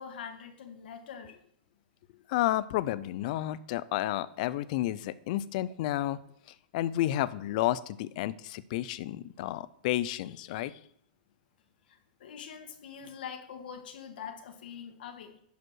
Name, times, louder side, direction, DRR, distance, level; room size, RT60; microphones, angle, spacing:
voice 1, 0.0-1.4 11.9-15.4, left 7 dB, 75° left, 6 dB, 1.8 m, -44 dB
voice 2, 2.3-6.2 6.7-10.7, left 14 dB, 55° left, 17 dB, 0.6 m, -31 dB
11.0 x 5.1 x 4.7 m, 0.70 s
supercardioid pair, 145°, 5 cm